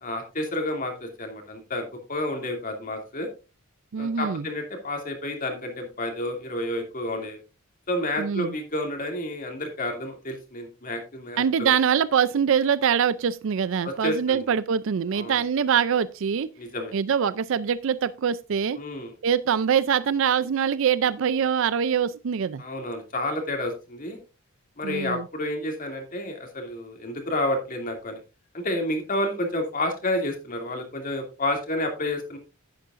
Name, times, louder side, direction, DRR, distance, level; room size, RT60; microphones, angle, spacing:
voice 1, 0.0-3.3 4.0-7.4 7.9-11.7 13.8-14.4 15.1-15.4 16.6-16.9 18.8-19.1 22.6-24.2 24.8-28.2 28.5-32.4, left 1 dB, 40° left, 2.6 m, -30 dB
voice 2, 3.9-4.4 8.2-8.5 11.4-16.5 16.9-18.8 19.2-22.6 24.8-25.3, right 7 dB, 65° right, 0.4 m, -24 dB
10.5 x 10.5 x 2.5 m
head